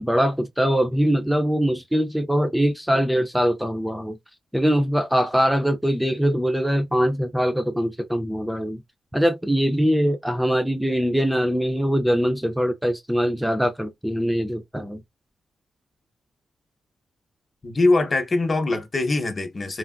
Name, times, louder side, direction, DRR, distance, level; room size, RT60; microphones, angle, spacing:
voice 1, 0.0-4.2 4.5-8.8 9.1-15.0, equal, 5° right, 0.4 m, -22 dB
voice 2, 17.6-19.8, left 2 dB, 35° left, 0.7 m, -22 dB
3.2 x 2.5 x 2.2 m
cardioid pair, 105°, 0 cm